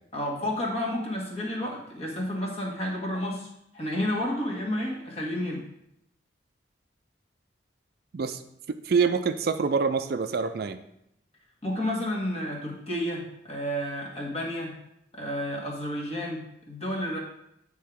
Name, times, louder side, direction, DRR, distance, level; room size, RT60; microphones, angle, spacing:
voice 1, 0.1-3.5 3.7-5.6 11.6-14.8 15.1-17.2, left 1 dB, 35° left, -2 dB, 1.6 m, -31 dB
voice 2, 8.7-10.8, right 5 dB, 55° right, 10 dB, 0.4 m, -26 dB
9.3 x 3.8 x 4.6 m, 0.79 s
head